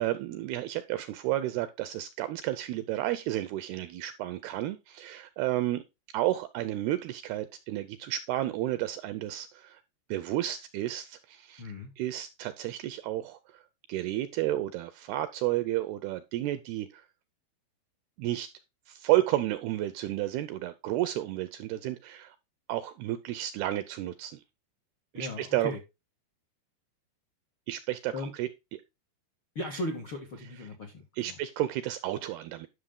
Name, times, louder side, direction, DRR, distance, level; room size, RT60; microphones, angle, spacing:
voice 1, 0.0-5.8 6.1-9.8 10.1-11.6 12.0-13.6 13.9-17.0 18.2-18.5 18.9-22.4 22.7-24.4 25.1-25.7 27.7-28.8 31.2-32.7, right 14 dB, 80° right, 2.3 m, -31 dB
voice 2, 11.6-11.9 25.1-25.8 28.1-28.3 29.5-31.4, left 1 dB, 60° left, 1.3 m, -37 dB
11.0 x 6.4 x 3.8 m
omnidirectional pair, 5.1 m